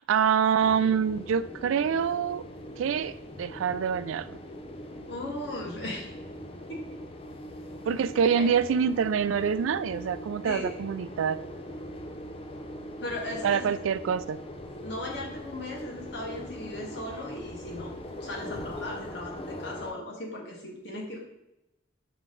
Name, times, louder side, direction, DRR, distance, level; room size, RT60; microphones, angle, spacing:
voice 1, 0.1-2.4 2.8-4.4 7.9-11.4 13.4-14.4, right 7 dB, 85° right, 15 dB, 0.3 m, -26 dB
sound 1, 0.6-19.9, equal, 30° left, 0.5 m, -41 dB
voice 2, 5.1-6.0 6.7-7.0 8.3-8.5 10.4-10.7 13.0-13.6 14.8-17.9 18.2-21.2, left 1 dB, 60° left, -2 dB, 1.7 m, -37 dB
5.7 x 4.6 x 3.8 m, 0.90 s
head